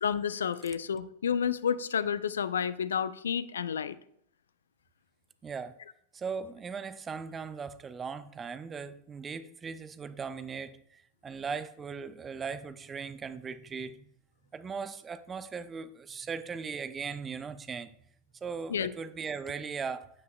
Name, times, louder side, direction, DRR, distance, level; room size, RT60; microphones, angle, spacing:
voice 1, 0.0-4.0 18.7-18.9, left 7 dB, 65° left, 0.6 m, -30 dB
voice 2, 5.4-5.7 6.1-14.1 14.5-17.9 18.4-20.1, right 5 dB, 20° right, 0.7 m, -38 dB
13.0 x 9.3 x 2.4 m
figure-of-eight pair, 90°, 0 cm